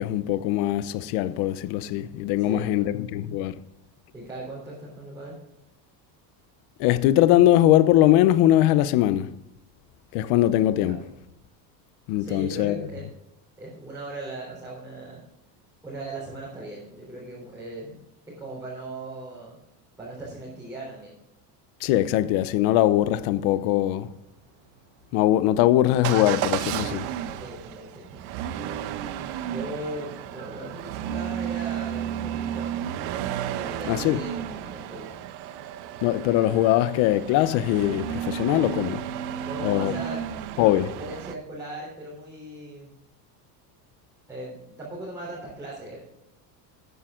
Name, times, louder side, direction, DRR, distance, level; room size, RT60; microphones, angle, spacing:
voice 1, 0.0-3.6 6.8-9.4 10.1-11.0 12.1-12.9 21.8-24.1 25.1-27.1 33.9-34.2 36.0-39.0 39.6-39.9 40.6-40.9, left 13 dB, 55° left, 0.7 m, -21 dB
voice 2, 2.4-2.9 4.1-5.4 10.8-11.1 12.2-13.0 13.6-15.2 15.8-18.0 18.3-19.6 20.0-21.2 27.3-28.2 28.5-28.7 29.4-32.8 33.5-35.1 39.4-40.2 40.8-42.9 44.3-46.0, right 2 dB, 5° right, 3.6 m, -38 dB
Motor vehicle (road) / Engine starting / Accelerating revving vroom, 26.0-41.4, right 10 dB, 65° right, 1.0 m, -33 dB
13.5 x 9.1 x 3.7 m
cardioid pair, 175°, 46 cm